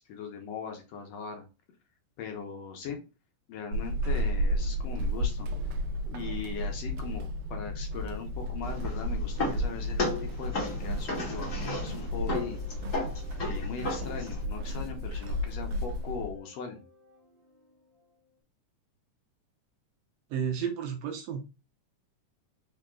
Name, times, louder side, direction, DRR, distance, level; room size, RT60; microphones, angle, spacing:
voice 1, 0.0-1.5 2.2-3.0 3.5-5.5 6.0-12.6 13.4-16.8, left 6 dB, 70° left, 4 dB, 1.8 m, -40 dB
Walk footsteps / Squeak, 3.7-16.4, equal, 90° right, 2.1 m, -33 dB
sound 1, 8.6-14.4, left 2 dB, 40° left, 1.1 m, -35 dB
sound 2, 10.4-18.4, left 1 dB, 35° right, 0.9 m, -50 dB
voice 2, 20.3-21.4, right 7 dB, 70° right, 4 dB, 1.8 m, -32 dB
4.8 x 4.0 x 2.3 m, 0.30 s
omnidirectional pair, 3.4 m